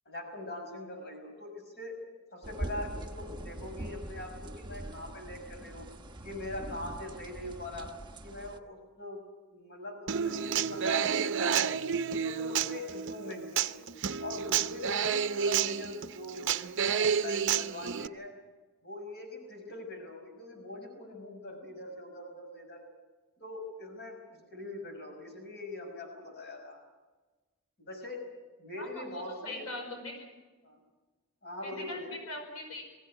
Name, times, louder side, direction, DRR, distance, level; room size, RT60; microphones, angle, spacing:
voice 1, 0.1-2.0 2.3-5.9 6.2-7.9 8.2-9.2 9.5-11.8 12.2-13.9 14.2-18.3 18.8-22.8 23.4-26.8 27.8-28.2 28.6-29.7 30.6-30.8 31.4-32.2, left 2 dB, 50° left, 3 dB, 6.1 m, -42 dB
sound 1, 2.4-8.6, right 1 dB, 20° right, 1.0 m, -42 dB
Human voice / Acoustic guitar, 10.1-18.1, right 7 dB, 55° right, 0.7 m, -30 dB
voice 2, 28.8-30.3 31.6-32.8, left 1 dB, 80° left, 3 dB, 5.0 m, -41 dB
22.0 x 16.0 x 9.8 m, 1.2 s
head